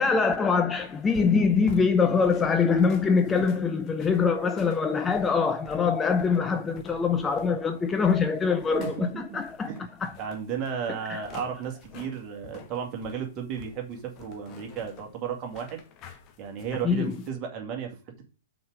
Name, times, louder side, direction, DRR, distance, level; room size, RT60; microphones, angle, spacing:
voice 1, 0.0-9.7 10.0-10.1 11.1-11.2 16.8-17.1, left 5 dB, 15° left, 0.5 m, -24 dB
sound 1, 0.8-17.3, left 7 dB, 30° left, 1.1 m, -49 dB
voice 2, 10.2-15.8 16.4-18.0, right 7 dB, 30° right, 2.1 m, -34 dB
5.5 x 5.0 x 6.1 m
figure-of-eight pair, 115°, 0 cm